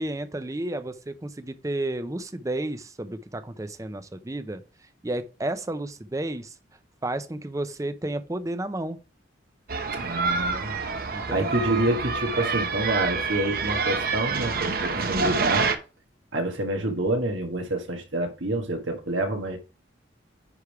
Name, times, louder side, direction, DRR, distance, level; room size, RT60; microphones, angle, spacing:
voice 1, 0.0-6.6 7.0-9.0 11.1-11.6, right 1 dB, 15° right, 0.5 m, -32 dB
sound 1, 9.7-15.7, right 4 dB, 50° right, 0.8 m, -27 dB
voice 2, 9.9-10.8 11.3-15.7 16.3-19.6, right 1 dB, 80° right, 1.4 m, -27 dB
9.7 x 3.4 x 4.7 m
head